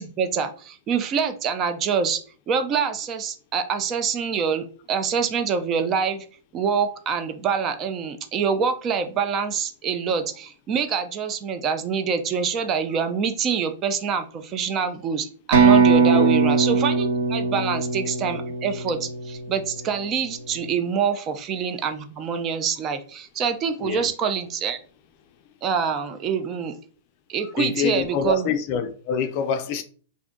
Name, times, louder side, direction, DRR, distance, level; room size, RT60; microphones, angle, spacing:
voice 1, 0.0-2.2 2.5-6.2 6.5-24.8 25.6-26.7 27.3-28.5, right 6 dB, 30° right, 0.4 m, -25 dB
sound 1, 15.5-19.3, right 5 dB, 65° right, 0.8 m, -19 dB
voice 2, 27.6-29.8, left 7 dB, 45° left, 0.4 m, -26 dB
2.5 x 2.2 x 3.7 m
hypercardioid pair, 140°, 0 cm